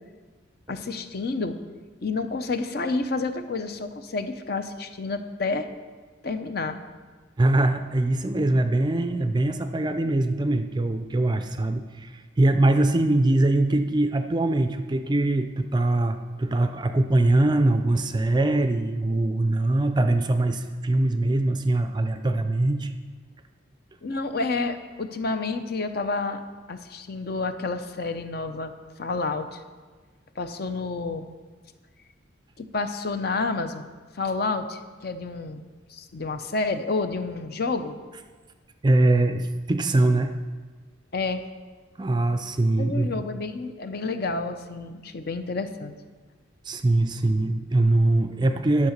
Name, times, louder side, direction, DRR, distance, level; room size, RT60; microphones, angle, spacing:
voice 1, 0.7-1.6 2.0-5.7 6.2-6.8 24.0-26.4 26.7-28.7 29.0-29.6 30.4-31.3 32.6-33.9 34.1-35.6 35.9-38.0 41.1-41.4 42.8-46.0, left 3 dB, 50° left, 9 dB, 0.6 m, -29 dB
voice 2, 7.4-22.9 38.8-40.4 42.0-43.1 46.7-48.9, right 2 dB, 20° right, 8 dB, 0.4 m, -22 dB
11.0 x 5.7 x 6.5 m, 1.4 s
head